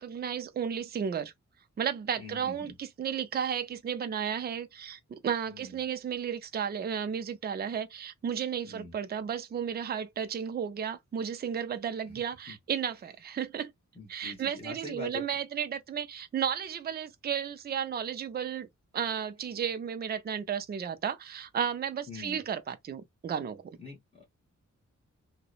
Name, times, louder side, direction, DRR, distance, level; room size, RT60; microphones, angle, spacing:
voice 1, 0.0-1.3 1.8-13.7 14.1-18.7 18.9-23.8, right 8 dB, 35° right, 0.4 m, -33 dB
voice 2, 2.2-2.7 5.5-5.7 8.6-8.9 12.5-12.6 14.0-15.2 22.1-22.4 23.8-24.2, left 2 dB, 20° left, 1.0 m, -43 dB
2.8 x 2.0 x 2.3 m
wide cardioid pair, 145°, 31 cm